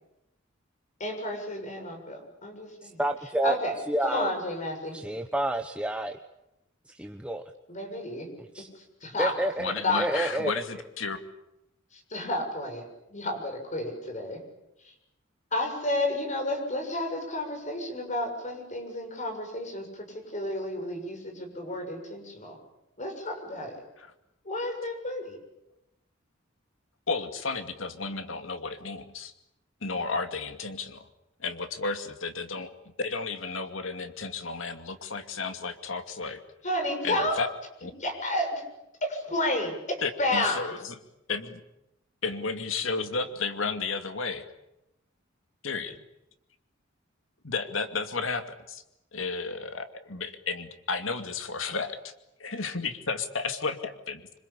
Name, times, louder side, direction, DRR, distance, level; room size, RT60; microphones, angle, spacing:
voice 1, 1.0-3.0 3.4-3.8 4.0-5.0 7.7-8.3 9.0-9.3 9.8-10.4 12.1-12.8 13.1-14.4 15.5-19.9 20.3-22.6 23.0-23.8 24.5-25.4 36.6-37.4 38.0-38.6 39.0-40.7, left 1 dB, 40° left, 4 dB, 7.0 m, -31 dB
voice 2, 2.8-3.6 3.9-4.3 4.9-6.2 6.9-7.4 8.4-8.7 9.2-10.5, right 1 dB, 5° right, 5 dB, 1.1 m, -29 dB
voice 3, 9.4-11.2 24.0-24.1 27.1-29.3 29.8-31.1 31.4-32.7 33.0-36.4 37.0-37.5 37.8-37.9 40.0-41.0 41.3-41.6 42.2-44.4 45.6-45.9 47.4-48.8 49.1-52.1 52.4-54.2, left 4 dB, 85° left, 8 dB, 2.4 m, -33 dB
26.0 x 26.0 x 8.5 m, 0.88 s
head